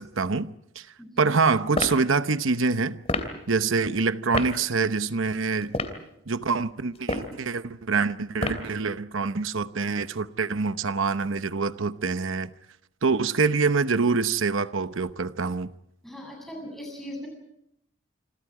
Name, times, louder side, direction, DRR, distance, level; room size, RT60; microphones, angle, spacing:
voice 1, 0.0-0.9 1.2-3.0 3.5-5.7 6.3-12.5 13.0-15.7, right 4 dB, 70° right, 0.9 m, -25 dB
voice 2, 1.0-1.3 16.0-17.3, equal, ahead, 7.8 m, -39 dB
sound 1, 1.7-2.0 3.1-3.3 4.3-4.5 5.6-6.0 7.0-7.4 8.4-8.7, left 2 dB, 30° left, 2.9 m, -28 dB
27.5 x 26.5 x 4.9 m
head